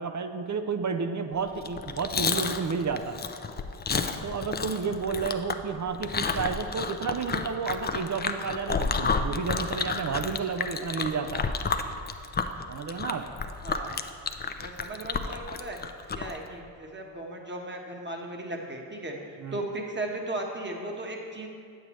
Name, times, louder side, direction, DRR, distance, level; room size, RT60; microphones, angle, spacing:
voice 1, 0.0-3.2 4.2-11.5 12.7-13.3 19.4-19.6, right 5 dB, 35° right, 7 dB, 0.6 m, -31 dB
Chewing mastication, 1.6-16.4, left 5 dB, 20° left, 0.4 m, -31 dB
voice 2, 13.6-14.0 14.6-15.8 16.1-19.2 19.5-21.5, right 1 dB, 20° right, 1 dB, 1.3 m, -36 dB
8.7 x 8.0 x 3.1 m, 2.3 s
supercardioid pair, 55°, 49 cm